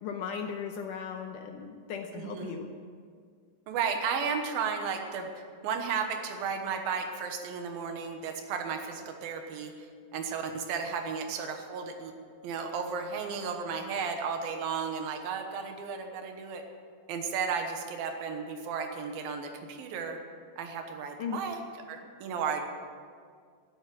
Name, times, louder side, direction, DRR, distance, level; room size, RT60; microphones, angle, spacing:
voice 1, 0.0-2.7 21.2-21.4, left 7 dB, 75° left, 4 dB, 2.0 m, -37 dB
voice 2, 2.1-2.6 3.7-5.3 5.6-9.7 10.1-12.1 12.4-16.6 17.1-20.2 20.6-21.6 21.9-22.7, right 6 dB, 85° right, 5 dB, 3.0 m, -34 dB
13.5 x 8.2 x 9.3 m, 2.1 s
omnidirectional pair, 4.2 m